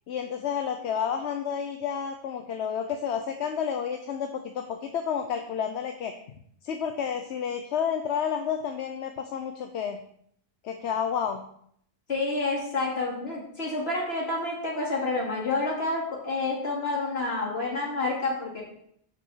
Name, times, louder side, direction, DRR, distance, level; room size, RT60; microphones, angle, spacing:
voice 1, 0.1-6.1 6.6-10.0 10.6-11.4, left 7 dB, 85° left, 6 dB, 1.0 m, -30 dB
voice 2, 12.1-18.6, left 3 dB, 70° left, -3 dB, 2.7 m, -29 dB
7.1 x 5.2 x 6.4 m, 0.69 s
omnidirectional pair, 1.1 m